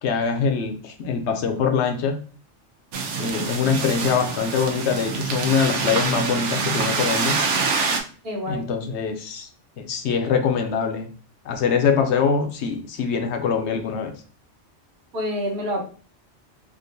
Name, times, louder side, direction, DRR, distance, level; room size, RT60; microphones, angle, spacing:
voice 1, 0.0-2.2 3.2-7.4 8.5-9.5 9.8-11.1 11.4-14.1, left 6 dB, 75° left, 6 dB, 0.8 m, -23 dB
sound 1, 2.9-8.0, right 5 dB, 80° right, 0.9 m, -25 dB
voice 2, 8.2-8.6 15.1-15.8, equal, 60° right, 0 dB, 1.1 m, -27 dB
3.7 x 2.5 x 2.6 m, 0.41 s
omnidirectional pair, 1.2 m